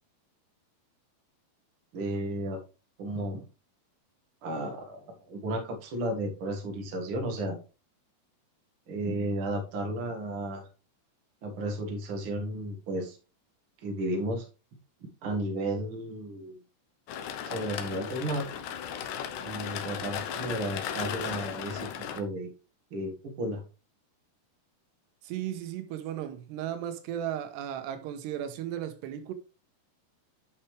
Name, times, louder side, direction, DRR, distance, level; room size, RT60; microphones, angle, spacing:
voice 1, 1.9-2.6 3.0-3.4 4.4-7.6 8.9-10.6 11.4-13.2 13.8-14.5 15.2-16.6 17.4-18.5 19.4-22.5 22.9-23.6, right 1 dB, 45° right, 1.8 m, -33 dB
sound 1, 17.1-22.2, left 8 dB, 80° left, 1.8 m, -36 dB
voice 2, 25.2-29.3, right 10 dB, 90° right, 3.0 m, -35 dB
10.0 x 5.7 x 3.3 m
omnidirectional pair, 4.8 m